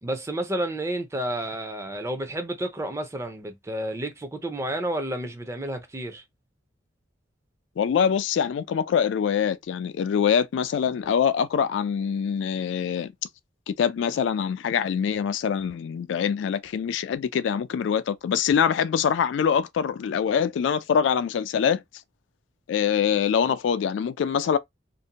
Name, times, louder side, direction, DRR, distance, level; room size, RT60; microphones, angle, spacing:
voice 1, 0.0-6.2, right 1 dB, 15° right, 0.4 m, -31 dB
voice 2, 7.8-13.1 13.7-21.8 22.7-24.6, left 7 dB, 85° left, 0.3 m, -24 dB
2.6 x 2.1 x 2.8 m
head